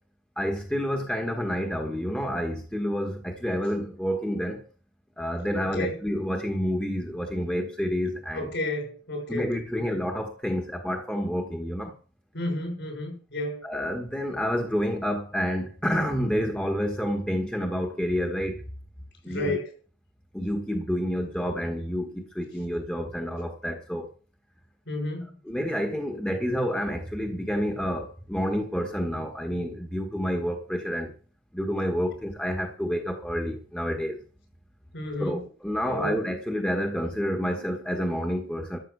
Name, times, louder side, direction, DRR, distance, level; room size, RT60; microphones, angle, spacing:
voice 1, 0.4-4.7 5.2-8.5 9.3-11.9 13.6-18.6 19.2-19.6 20.3-24.1 25.4-31.1 31.5-34.2 35.2-38.8, equal, 5° left, 1.4 m, -29 dB
voice 2, 5.6-6.0 8.3-10.0 12.3-13.6 19.3-19.7 24.9-25.4 34.9-35.4 35.9-36.1, left 1 dB, 60° left, 6.3 m, -32 dB
13.0 x 7.5 x 6.7 m
head